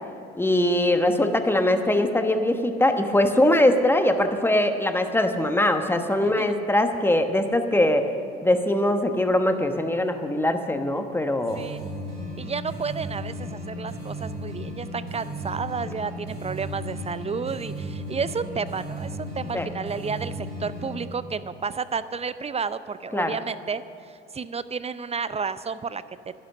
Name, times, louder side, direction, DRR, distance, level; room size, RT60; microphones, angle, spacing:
voice 1, 0.4-8.0 8.4-11.6 19.5-19.7 23.1-23.3, left 1 dB, 10° left, 7 dB, 1.2 m, -22 dB
voice 2, 6.2-6.6 11.5-11.9 12.4-26.0, right 5 dB, 20° right, 14 dB, 0.6 m, -31 dB
sound 1, 11.5-21.1, equal, 85° right, 3.2 m, -35 dB
11.5 x 11.0 x 6.6 m, 2.6 s
hypercardioid pair, 60°, 29 cm